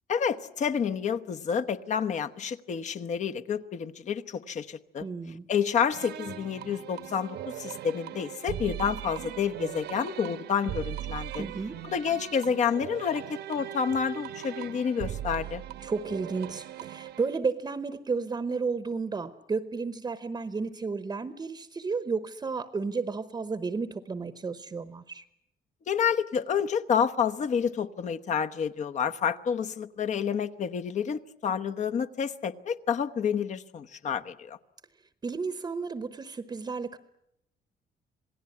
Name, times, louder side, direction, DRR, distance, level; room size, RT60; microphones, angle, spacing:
voice 1, 0.1-5.1 5.5-11.4 11.8-15.6 25.9-34.6, left 7 dB, 45° left, 1.0 m, -29 dB
voice 2, 5.0-5.4 11.4-11.8 15.8-25.2 35.2-37.0, right 4 dB, 25° right, 1.0 m, -32 dB
sound 1, 5.9-17.4, right 12 dB, 80° right, 1.3 m, -39 dB
27.5 x 18.5 x 9.7 m
cardioid pair, 160°, 17 cm